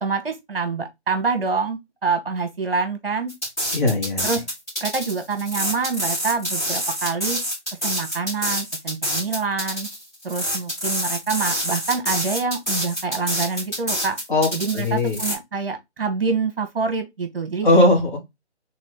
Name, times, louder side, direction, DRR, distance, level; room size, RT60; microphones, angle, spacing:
voice 1, 0.0-3.3 4.2-4.4 4.8-7.4 7.8-9.9 10.2-14.2 14.5-17.7, right 4 dB, 55° right, 1.2 m, -26 dB
sound 1, 3.3-15.4, equal, 15° left, 2.3 m, -27 dB
voice 2, 3.7-4.3 14.3-14.5 14.7-15.2 17.6-18.2, left 2 dB, 45° left, 2.4 m, -18 dB
4.0 x 3.7 x 3.4 m
hypercardioid pair, 175°, 35 cm